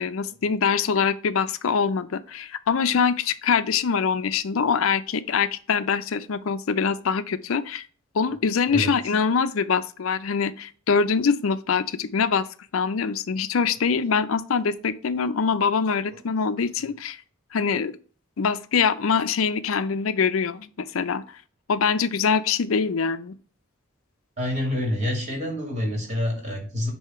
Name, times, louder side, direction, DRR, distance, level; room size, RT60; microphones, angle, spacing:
voice 1, 0.0-7.8 8.1-12.5 12.7-17.2 17.5-17.9 18.4-21.2 21.7-23.4, left 6 dB, 75° left, 0.5 m, -24 dB
voice 2, 24.4-26.9, left 1 dB, 35° right, 2.4 m, -27 dB
6.6 x 2.8 x 5.6 m
head